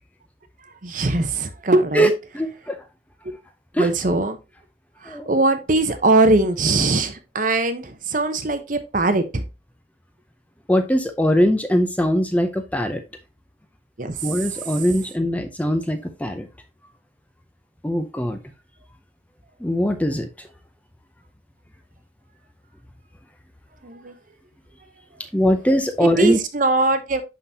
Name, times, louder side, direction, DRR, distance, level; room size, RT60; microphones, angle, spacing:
voice 1, 0.8-2.1 3.8-4.4 5.0-9.4 14.0-14.7 23.8-24.1 26.0-27.2, right 2 dB, 45° right, 0.8 m, -21 dB
voice 2, 2.3-2.8 3.7-3.9 5.1-5.3 10.7-13.0 14.2-16.5 17.8-18.4 19.6-20.3 25.3-26.4, equal, 5° left, 0.5 m, -21 dB
11.0 x 3.9 x 2.8 m
head